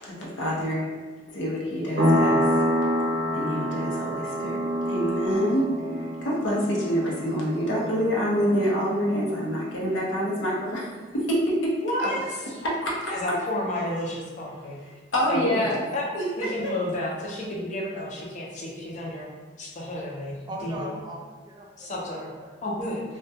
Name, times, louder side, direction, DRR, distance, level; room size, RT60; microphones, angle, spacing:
voice 1, 0.0-0.9 1.3-2.4 3.3-11.7 12.0-12.1 12.6-13.3 15.1-15.8 16.1-16.7, equal, 85° left, -4 dB, 0.6 m, -27 dB
sound 1, 2.0-10.3, equal, 70° right, 0.5 m, -27 dB
voice 2, 11.8-12.5 13.1-14.8 15.3-15.7 15.9-16.0 16.4-19.3 19.6-21.0 21.8-22.3 22.6-23.0, left 1 dB, 40° left, -3 dB, 0.5 m, -31 dB
voice 3, 20.5-22.7, right 1 dB, 25° right, 0 dB, 0.3 m, -40 dB
2.2 x 2.2 x 2.6 m, 1.3 s
head